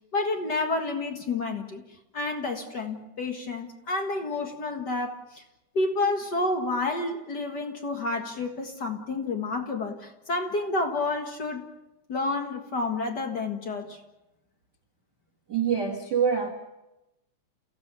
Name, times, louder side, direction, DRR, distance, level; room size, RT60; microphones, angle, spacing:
voice 1, 0.1-1.8 2.1-5.4 5.7-11.6 12.1-14.0, left 3 dB, 40° left, 4 dB, 1.6 m, -29 dB
voice 2, 15.5-16.5, right 7 dB, 40° right, -1 dB, 1.8 m, -25 dB
30.0 x 16.0 x 6.9 m, 0.95 s
omnidirectional pair, 4.0 m